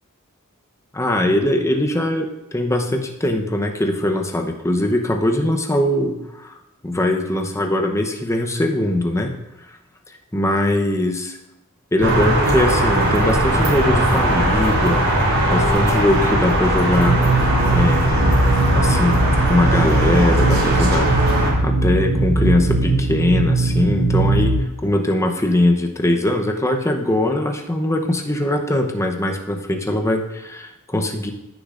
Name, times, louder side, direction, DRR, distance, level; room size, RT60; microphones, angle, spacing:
voice 1, 0.9-6.5 6.8-9.3 10.3-11.4 11.9-18.4 18.7-19.2 19.5-21.1 21.4-24.5 24.8-31.3, left 1 dB, 15° left, 3 dB, 0.8 m, -21 dB
sound 1, 12.0-21.5, right 1 dB, 80° right, 2.7 m, -19 dB
sound 2, 17.0-24.6, right 2 dB, 40° right, 0.6 m, -20 dB
15.0 x 6.7 x 2.5 m, 0.97 s
head